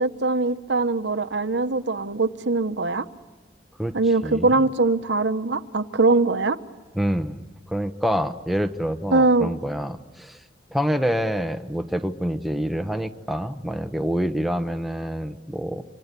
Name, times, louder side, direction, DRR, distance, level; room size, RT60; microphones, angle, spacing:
voice 1, 0.0-3.1 3.9-6.6 9.1-9.5, right 3 dB, 70° right, 10 dB, 1.2 m, -22 dB
voice 2, 4.2-4.7 6.9-10.4 10.7-15.8, equal, ahead, 7 dB, 1.1 m, -27 dB
27.0 x 26.5 x 8.3 m, 1.3 s
head